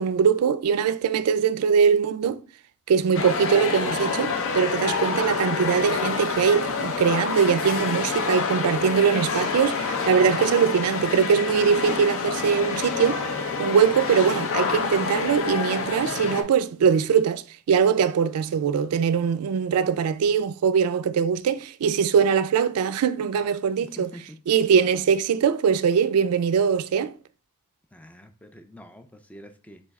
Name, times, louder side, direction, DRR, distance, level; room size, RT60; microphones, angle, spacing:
voice 1, 0.0-2.4 2.9-13.2 13.6-24.1 24.5-27.1, right 6 dB, 75° right, 0.3 m, -22 dB
sound 1, 3.1-16.4, left 5 dB, 65° left, 0.6 m, -27 dB
voice 2, 24.0-24.4 27.9-29.8, equal, 5° left, 0.3 m, -45 dB
4.0 x 3.1 x 3.5 m
head